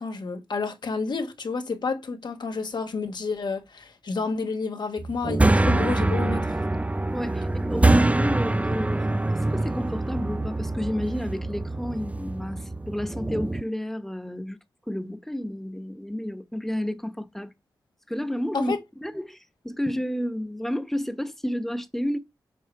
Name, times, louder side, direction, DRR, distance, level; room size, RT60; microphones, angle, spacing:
voice 1, 0.0-6.5 18.5-18.8, left 4 dB, 65° left, 1.4 m, -30 dB
sound 1, 5.0-13.6, right 2 dB, 15° right, 0.4 m, -25 dB
voice 2, 7.1-14.6 14.9-17.5 18.1-22.2, equal, 5° left, 1.2 m, -30 dB
7.5 x 3.2 x 4.8 m
cardioid pair, 40°, 8 cm